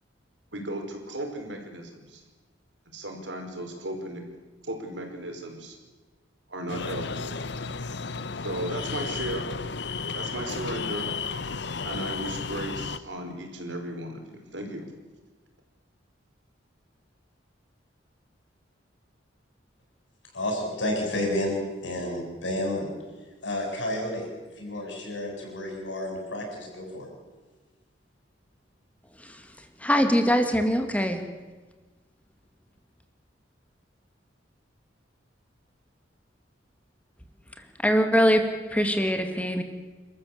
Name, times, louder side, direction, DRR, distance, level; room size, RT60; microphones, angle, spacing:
voice 1, 0.5-2.2 2.9-4.2 4.6-5.8 6.5-7.3 8.3-9.5 10.1-11.1 11.8-14.9, right 1 dB, 80° right, 3 dB, 4.8 m, -35 dB
sound 1, 6.7-13.0, left 4 dB, 65° left, 0.8 m, -33 dB
voice 2, 20.3-21.5 21.8-22.9 23.4-24.3 24.6-27.1, left 1 dB, 80° left, 1 dB, 8.0 m, -30 dB
voice 3, 29.8-31.2 37.8-39.6, equal, 10° left, 6 dB, 2.3 m, -23 dB
28.5 x 14.0 x 8.5 m, 1.3 s
head